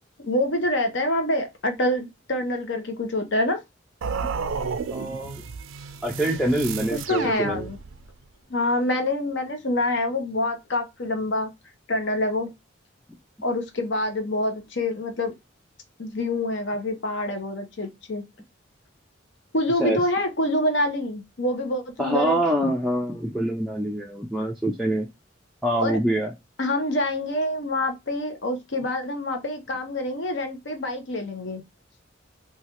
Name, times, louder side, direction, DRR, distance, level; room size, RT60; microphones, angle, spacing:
voice 1, 0.2-3.6 6.9-7.8 8.5-11.5 11.9-12.5 13.4-15.3 16.0-18.2 19.5-22.4 25.8-26.0 26.6-31.6, left 1 dB, 65° left, 0.7 m, -26 dB
sound 1, 4.0-8.1, right 5 dB, 90° right, 0.4 m, -32 dB
voice 2, 4.9-5.4 6.0-7.7 19.8-20.0 22.0-25.1 25.6-26.3, right 1 dB, ahead, 0.3 m, -25 dB
3.1 x 2.3 x 2.8 m
head